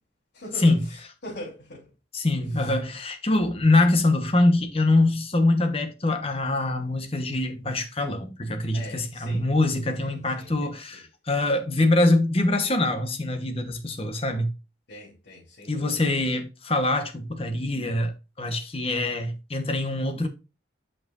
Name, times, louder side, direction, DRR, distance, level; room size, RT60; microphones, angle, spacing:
voice 1, 0.3-1.0 1.2-1.9 2.6-2.7 8.7-9.5 10.0-11.0 14.9-16.2, left 1 dB, 65° left, 3.3 m, -42 dB
voice 2, 2.1-14.5 15.7-18.1 18.4-20.3, left 2 dB, 30° left, 1.1 m, -24 dB
8.2 x 5.9 x 2.6 m
head